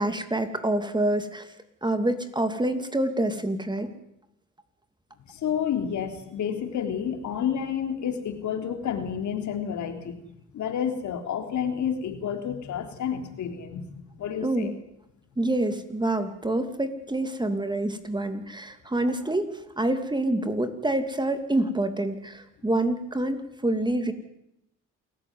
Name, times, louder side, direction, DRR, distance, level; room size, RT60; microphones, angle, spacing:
voice 1, 0.0-1.5 1.8-3.9 14.4-14.7 15.4-19.5 19.8-24.1, right 1 dB, 15° right, 9 dB, 2.8 m, -27 dB
voice 2, 5.3-10.2 10.5-14.7, left 8 dB, 75° left, 6 dB, 3.3 m, -30 dB
27.5 x 14.5 x 9.6 m, 0.82 s
cardioid pair, 90°, 30 cm